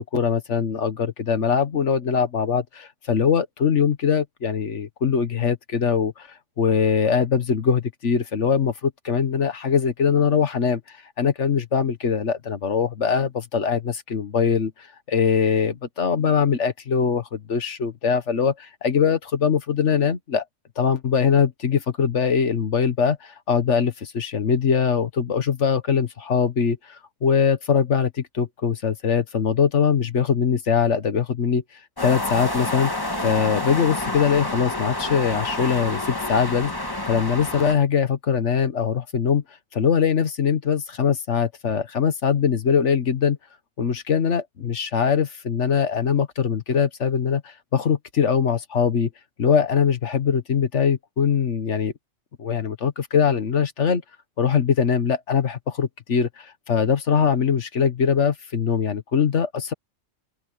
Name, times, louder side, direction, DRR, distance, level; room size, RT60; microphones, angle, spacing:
voice 1, 0.0-6.3 6.6-10.8 11.2-14.7 15.1-20.4 20.8-31.6 32.0-32.9 33.2-36.7 37.1-39.4 39.7-43.4 43.8-49.1 49.4-51.9 52.4-54.0 54.4-59.7, left 6 dB, 65° left, 1.7 m, -22 dB
sound 1, 32.0-37.7, left 1 dB, 15° left, 1.7 m, -28 dB
open air
omnidirectional pair, 1.3 m